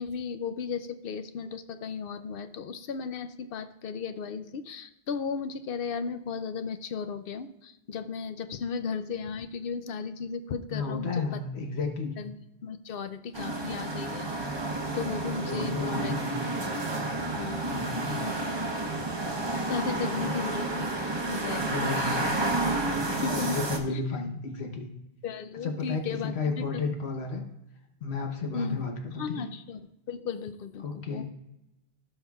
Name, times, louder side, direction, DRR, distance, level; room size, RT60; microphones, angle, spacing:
voice 1, 0.0-11.4 12.2-14.5 14.9-16.2 17.3-18.4 19.7-20.9 21.3-22.3 23.2-23.6 23.9-24.0 25.2-26.9 28.5-28.8 29.2-29.8 30.1-31.3, left 5 dB, 65° left, 10 dB, 0.7 m, -35 dB
voice 2, 10.7-12.2 15.4-16.4 17.7-18.2 20.1-20.4 21.6-22.3 23.3-24.9 25.6-27.4 28.0-29.5 30.8-31.3, left 4 dB, 85° left, 4 dB, 1.2 m, -33 dB
sound 1, 13.3-23.8, right 2 dB, 25° right, 0.8 m, -30 dB
16.5 x 5.6 x 2.3 m, 0.90 s
omnidirectional pair, 1.1 m